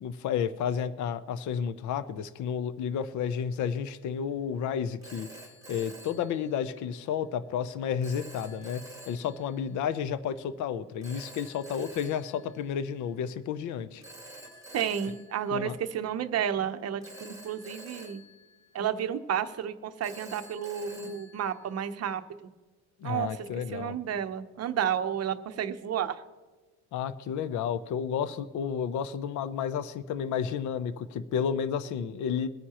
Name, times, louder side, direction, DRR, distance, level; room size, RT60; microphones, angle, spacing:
voice 1, 0.0-5.3 5.7-14.0 15.5-15.8 23.0-24.0 26.9-32.5, left 7 dB, 45° left, 14 dB, 0.6 m, -31 dB
Telephone, 3.8-4.1 5.0-7.0 8.0-9.7 11.0-13.2 14.0-16.3 17.0-19.3 20.0-22.2, right 1 dB, 10° right, 1.5 m, -49 dB
voice 2, 14.7-18.2 18.7-22.5 23.0-26.2, right 9 dB, 40° right, 9 dB, 0.8 m, -31 dB
23.0 x 9.5 x 2.9 m, 1.3 s
cardioid pair, 145°, 40 cm